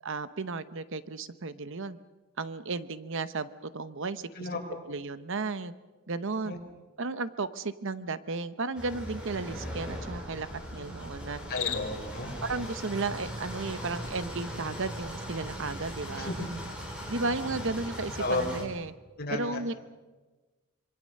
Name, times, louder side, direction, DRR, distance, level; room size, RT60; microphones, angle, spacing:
voice 1, 0.0-2.0 2.4-4.5 4.9-5.7 6.1-6.5 7.0-11.4 12.4-16.4 17.1-18.9 19.3-19.7, right 3 dB, 65° right, 13 dB, 0.9 m, -34 dB
sound 1, 8.7-18.6, equal, 5° right, 6.1 m, -39 dB
Cricket, 11.4-12.1, left 12 dB, 85° left, 2.4 m, -36 dB
voice 2, 11.5-12.3 16.2-16.5 18.2-18.5 19.2-19.6, left 2 dB, 50° left, 1 dB, 5.2 m, -32 dB
26.5 x 23.5 x 6.6 m, 1.2 s
head